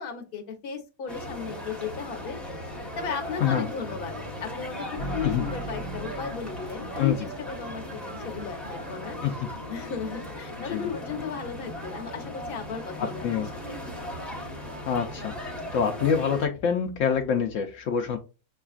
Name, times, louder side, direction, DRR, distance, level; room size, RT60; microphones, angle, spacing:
voice 1, 0.0-2.4 3.0-4.1 4.4-9.2 9.7-13.8, left 6 dB, 45° left, 0.8 m, -35 dB
sound 1, 1.1-16.5, left 1 dB, ahead, 0.3 m, -37 dB
sound 2, 5.0-9.0, right 1 dB, 65° right, 0.4 m, -39 dB
voice 2, 7.0-7.3 9.2-9.3 10.7-10.9 13.0-13.5 14.9-15.3 15.7-18.2, left 7 dB, 80° left, 0.7 m, -26 dB
6.3 x 2.3 x 2.4 m
omnidirectional pair, 1.9 m